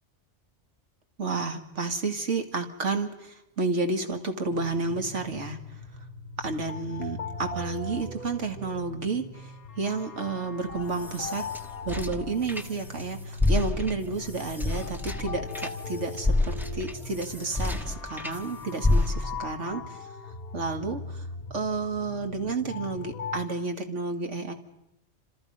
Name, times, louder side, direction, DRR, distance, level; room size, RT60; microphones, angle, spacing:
voice 1, 1.2-5.6 6.4-9.3 9.8-11.4 11.9-20.0 20.5-21.2 21.5-24.5, right 3 dB, 80° right, 6 dB, 2.2 m, -31 dB
sound 1, 4.5-23.5, left 3 dB, 50° left, 2.1 m, -40 dB
sound 2, 10.7-13.0 13.3-18.4 18.8-19.5, left 2 dB, ahead, 1.2 m, -29 dB
29.0 x 27.0 x 5.4 m, 0.88 s
omnidirectional pair, 1.2 m